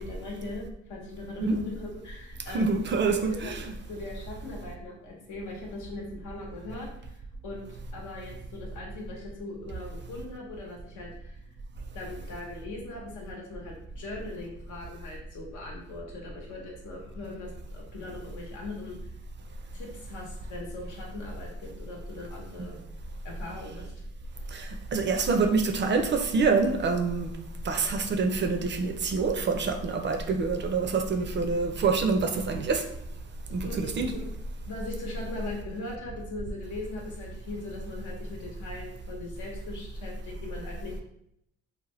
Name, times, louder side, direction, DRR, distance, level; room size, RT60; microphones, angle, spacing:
voice 1, 0.0-3.6 3.9-7.2 7.4-7.6 7.9-11.4 11.9-19.1 19.7-22.8 23.2-23.9 33.6-34.2 34.7-41.0, left 2 dB, 80° left, -2 dB, 0.9 m, -40 dB
voice 2, 2.5-3.7 22.6-22.7 24.5-27.3 27.6-32.8 33.5-34.1, right 4 dB, 40° right, 5 dB, 0.4 m, -26 dB
2.8 x 2.1 x 3.0 m, 0.76 s
cardioid pair, 90°, 30 cm